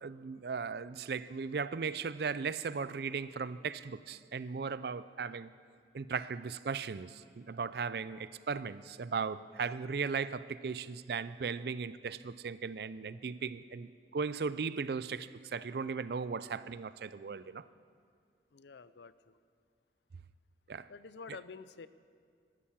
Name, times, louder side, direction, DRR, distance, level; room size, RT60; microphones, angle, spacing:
voice 1, 0.0-5.5 5.9-17.7 20.7-20.9, right 5 dB, 60° right, 0.4 m, -37 dB
voice 2, 18.5-19.4 20.9-21.9, left 4 dB, 70° left, 0.5 m, -49 dB
13.0 x 12.5 x 7.3 m
head